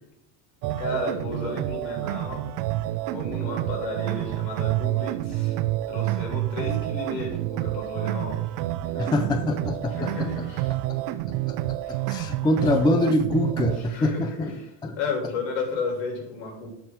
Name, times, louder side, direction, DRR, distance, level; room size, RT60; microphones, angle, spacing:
sound 1, 0.6-13.8, right 15 dB, 90° right, 0.7 m, -28 dB
voice 1, 0.8-2.4 3.1-5.6 5.9-8.4 8.9-9.1 9.9-10.7 11.8-11.9 13.9-14.6 15.0-16.7, left 3 dB, 65° left, 0 dB, 3.4 m, -32 dB
voice 2, 9.0-10.1 10.9-11.0 11.5-11.6 11.9-14.5 14.8-15.0, left 2 dB, 10° left, 7 dB, 0.4 m, -24 dB
9.2 x 3.5 x 5.8 m, 0.81 s
cardioid pair, 125°, 49 cm